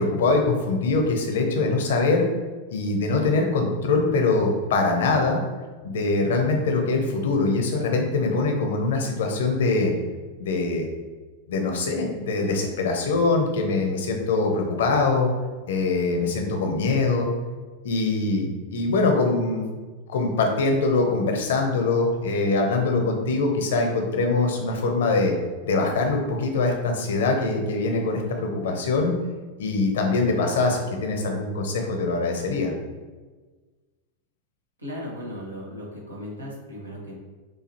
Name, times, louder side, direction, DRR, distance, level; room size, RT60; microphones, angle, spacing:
voice 1, 0.0-2.3 2.7-5.4 5.8-9.9 10.4-10.9 11.5-15.3 15.7-17.3 17.8-19.6 20.1-25.3 25.6-29.2 29.6-32.7, left 3 dB, 60° left, 2 dB, 0.8 m, -23 dB
voice 2, 34.8-37.2, equal, 80° right, -4 dB, 1.4 m, -36 dB
6.4 x 2.7 x 2.9 m, 1.3 s
figure-of-eight pair, 90°, 0 cm